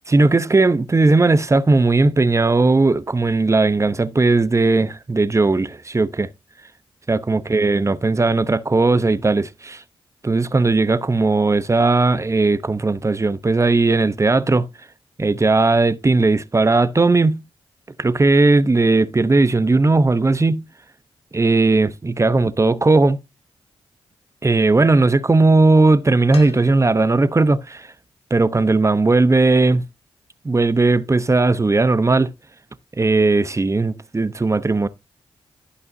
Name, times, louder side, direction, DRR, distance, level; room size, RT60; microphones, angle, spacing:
voice 1, 0.1-6.3 7.1-9.8 10.2-14.7 15.2-17.4 18.0-20.7 21.3-23.2 24.4-27.9 28.3-29.8 30.4-32.3 33.0-34.9, right 3 dB, 30° right, 0.9 m, -17 dB
sound 1, 26.3-27.3 28.8-28.9, left 5 dB, 70° left, 1.7 m, -41 dB
14.5 x 5.6 x 2.8 m
supercardioid pair, 45°, 11 cm